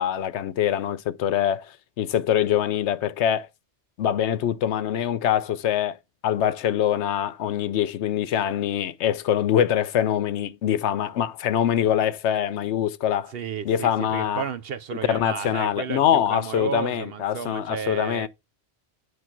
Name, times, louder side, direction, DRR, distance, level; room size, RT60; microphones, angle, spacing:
voice 1, 0.0-3.5 4.0-6.0 6.2-13.3 13.6-14.4 15.1-18.3, left 10 dB, 80° left, 0.9 m, -24 dB
voice 2, 13.3-18.3, right 7 dB, 60° right, 0.8 m, -32 dB
9.5 x 3.2 x 5.9 m
omnidirectional pair, 1.2 m